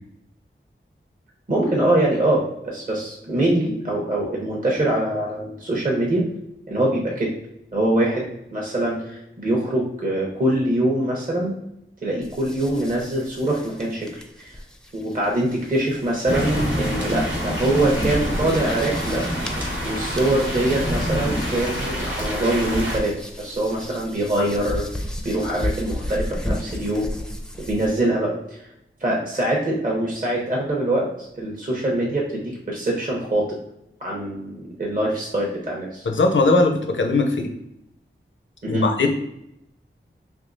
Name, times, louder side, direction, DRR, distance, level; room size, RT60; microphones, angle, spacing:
voice 1, 1.5-6.2 6.7-7.3 7.7-11.5 12.0-14.5 14.9-19.3 19.8-27.1 27.7-28.6 29.0-33.6 34.0-36.1 38.6-38.9, right 1 dB, 40° right, -3 dB, 0.9 m, -23 dB
sound 1, 12.2-27.9, left 1 dB, 5° left, 0.5 m, -35 dB
sound 2, 16.3-23.0, equal, 60° right, 1.2 m, -26 dB
voice 2, 36.1-37.5 38.7-39.1, left 3 dB, 65° left, 4 dB, 0.6 m, -19 dB
3.5 x 2.7 x 2.6 m, 0.81 s
cardioid pair, 40°, 21 cm